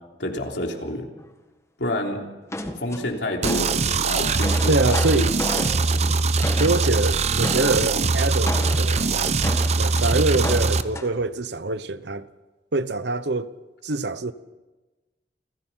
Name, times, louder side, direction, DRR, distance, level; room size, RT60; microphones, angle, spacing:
voice 1, 0.2-1.1 1.8-2.2 2.8-5.3, left 1 dB, 85° left, 3.4 m, -28 dB
sound 1, 2.5-3.8 4.2-7.0 7.4-7.8 8.4-10.0 10.4-11.1, left 1 dB, 15° left, 1.7 m, -32 dB
sound 2, 3.4-10.8, right 3 dB, 40° right, 0.7 m, -22 dB
voice 2, 4.7-5.3 6.6-9.3 9.8-12.3 12.7-13.5 13.8-14.3, right 2 dB, 75° right, 1.0 m, -24 dB
29.5 x 15.0 x 5.7 m
head